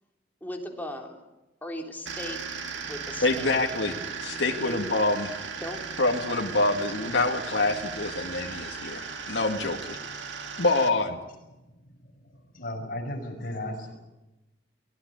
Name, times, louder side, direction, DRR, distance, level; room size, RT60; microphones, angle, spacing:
voice 1, 0.4-1.2 1.6-2.4 2.9-3.5 4.6-4.9 5.6-5.8, left 1 dB, 10° left, 1 dB, 3.5 m, -37 dB
sound 1, 2.1-10.9, right 5 dB, 80° right, 2.2 m, -37 dB
voice 2, 3.2-3.9 4.2-5.3 6.0-10.0 10.6-11.2, left 2 dB, 70° left, 3 dB, 2.1 m, -26 dB
voice 3, 11.6-14.0, left 1 dB, 50° left, 2 dB, 5.9 m, -36 dB
23.5 x 18.0 x 9.8 m, 0.99 s
head